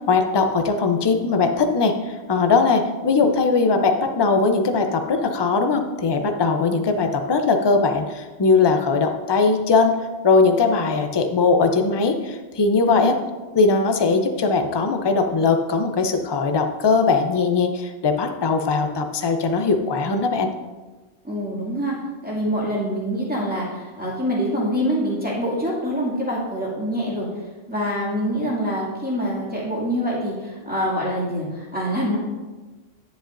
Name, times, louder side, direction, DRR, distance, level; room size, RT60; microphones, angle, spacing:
voice 1, 0.1-10.0 10.2-13.2 13.5-20.5, left 4 dB, 35° left, 5 dB, 0.4 m, -20 dB
voice 2, 21.2-21.9 22.2-27.3 27.7-32.2, equal, 5° right, -6 dB, 2.2 m, -25 dB
10.5 x 7.4 x 2.5 m, 1.2 s
omnidirectional pair, 1.2 m